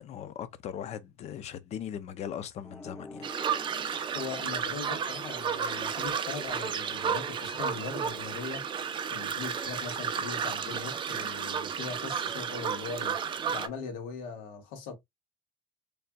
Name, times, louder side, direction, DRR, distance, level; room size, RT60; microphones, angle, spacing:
voice 1, 0.0-3.3, left 9 dB, 50° left, 0.7 m, -39 dB
sound 1, 2.6-5.6, left 2 dB, 10° left, 0.5 m, -48 dB
sound 2, 3.2-13.7, right 7 dB, 35° right, 0.7 m, -32 dB
voice 2, 4.1-8.7 9.1-14.9, left 5 dB, 85° left, 1.8 m, -40 dB
4.2 x 3.3 x 2.4 m
cardioid pair, 130°, 15 cm